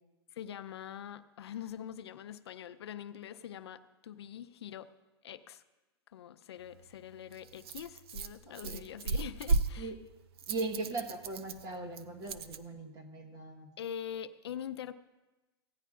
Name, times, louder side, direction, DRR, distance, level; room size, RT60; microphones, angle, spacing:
voice 1, 0.3-4.9 5.2-5.6 6.1-9.9 13.8-14.9, left 9 dB, 85° left, 0.5 m, -44 dB
Rattle, 6.6-12.6, right 3 dB, 70° right, 0.6 m, -36 dB
voice 2, 8.5-8.9 9.8-9.9 10.5-13.7, right 3 dB, 25° right, 1.2 m, -39 dB
16.5 x 10.0 x 2.4 m
hypercardioid pair, 145°, 13 cm